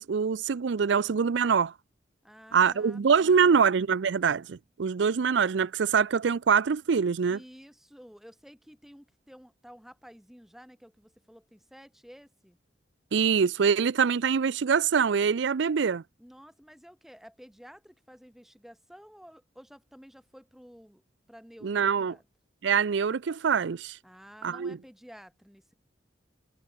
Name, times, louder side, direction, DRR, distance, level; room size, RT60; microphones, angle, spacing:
voice 1, 0.0-1.7 2.5-7.4 13.1-16.0 21.6-22.1 22.6-24.0 24.4-24.8, right 6 dB, 75° right, 0.5 m, -24 dB
voice 2, 2.2-3.6 7.3-12.6 16.2-21.0 21.3-22.2 24.0-25.8, equal, ahead, 2.3 m, -52 dB
head